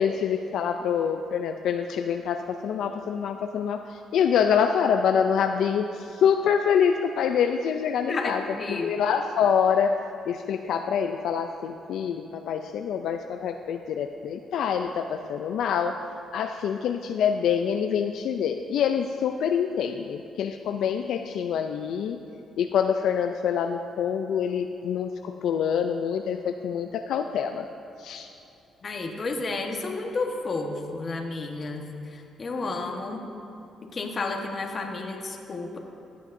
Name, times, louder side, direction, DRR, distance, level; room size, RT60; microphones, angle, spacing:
voice 1, 0.0-8.4 8.7-9.9 10.3-16.0 16.3-22.2 22.6-27.6 28.0-28.3, left 7 dB, 75° left, 6 dB, 0.4 m, -26 dB
voice 2, 8.1-8.9 28.8-33.2 33.9-35.8, left 3 dB, 40° left, 2 dB, 1.2 m, -31 dB
16.0 x 9.2 x 2.6 m, 2.9 s
cardioid pair, 90°, 0 cm